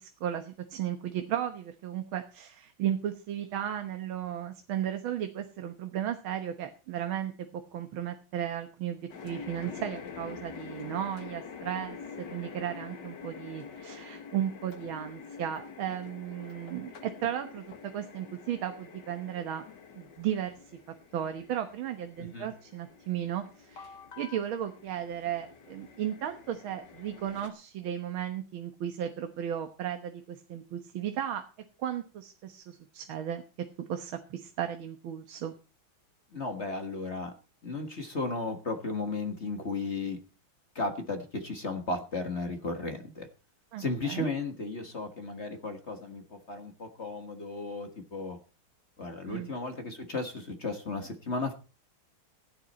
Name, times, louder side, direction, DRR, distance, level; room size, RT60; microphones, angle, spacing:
voice 1, 0.0-19.7 20.0-20.6 21.1-31.4 31.8-33.4 33.9-35.5 43.7-44.3 49.3-49.5, right 10 dB, 75° right, 7 dB, 1.9 m, -35 dB
sound 1, 9.1-27.5, left 6 dB, 60° left, 2.1 m, -46 dB
voice 2, 22.2-22.5 36.3-37.3 37.6-40.2 40.7-43.3 43.8-48.4 49.0-51.5, left 3 dB, 35° left, 6 dB, 1.6 m, -35 dB
16.0 x 10.5 x 4.3 m, 0.34 s
omnidirectional pair, 2.3 m